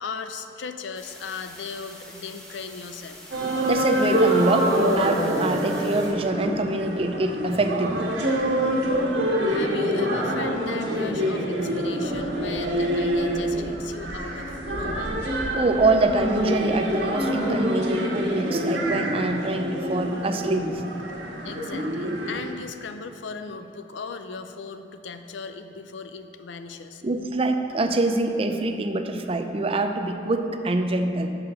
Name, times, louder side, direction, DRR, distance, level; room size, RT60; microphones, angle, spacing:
voice 1, 0.0-3.3 8.7-9.0 9.5-15.1 21.4-27.0, left 5 dB, 90° left, 9 dB, 0.5 m, -37 dB
sound 1, 0.9-6.1, equal, 5° left, 1.3 m, -45 dB
sound 2, 3.3-22.5, equal, 80° right, 1.6 m, -26 dB
voice 2, 3.6-8.2 15.5-20.8 27.0-31.3, right 2 dB, 30° right, 6 dB, 0.5 m, -25 dB
6.9 x 5.7 x 6.8 m, 2.7 s
head